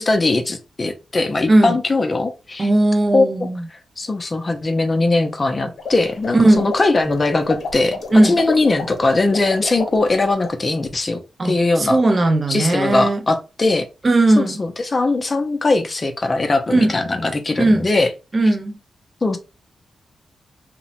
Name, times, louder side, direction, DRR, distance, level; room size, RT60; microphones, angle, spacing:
voice 1, 0.0-2.7 3.1-3.5 4.0-12.0 12.5-13.9 14.4-18.1 19.2-19.4, left 2 dB, 30° left, 0.4 m, -20 dB
voice 2, 2.6-3.6 6.3-6.7 8.1-8.4 11.4-13.2 14.0-14.6 16.7-16.9 17.6-17.9 18.3-18.7, right 2 dB, 35° right, 0.4 m, -16 dB
sound 1, 5.7-10.6, left 3 dB, 65° left, 0.9 m, -30 dB
2.9 x 2.0 x 2.8 m
cardioid pair, 100°, 0 cm